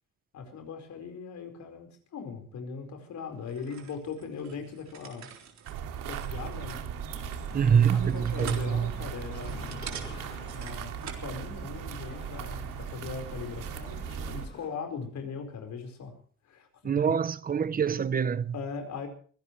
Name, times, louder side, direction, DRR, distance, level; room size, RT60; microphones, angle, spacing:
voice 1, 0.3-5.3 6.1-6.9 7.6-9.9 10.5-16.2 16.4-17.2 18.5-19.1, left 5 dB, 60° left, 4.8 m, -40 dB
sound 1, 3.4-11.3, right 7 dB, 55° right, 3.9 m, -46 dB
sound 2, 5.7-14.5, right 8 dB, 80° right, 2.4 m, -38 dB
sound 3, 7.1-14.7, left 4 dB, 35° left, 7.7 m, -49 dB
voice 2, 7.5-8.9 16.8-18.5, right 7 dB, 30° right, 0.7 m, -25 dB
24.0 x 17.0 x 3.2 m
cardioid pair, 135°, 32 cm